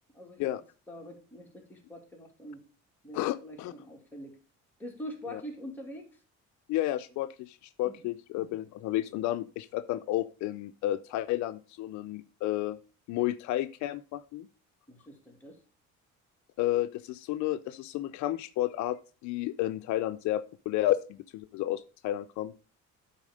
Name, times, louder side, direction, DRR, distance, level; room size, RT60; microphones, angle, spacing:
voice 1, 0.1-0.5 0.9-2.7 3.0-4.4 4.8-6.1 7.8-8.1 14.9-15.6, equal, 5° left, -1 dB, 2.5 m, -44 dB
voice 2, 3.1-3.7 5.3-5.4 6.7-12.8 13.1-14.5 16.6-22.5, left 14 dB, 75° left, 12 dB, 0.5 m, -31 dB
9.8 x 4.2 x 5.0 m, 0.35 s
cardioid pair, 125°, 29 cm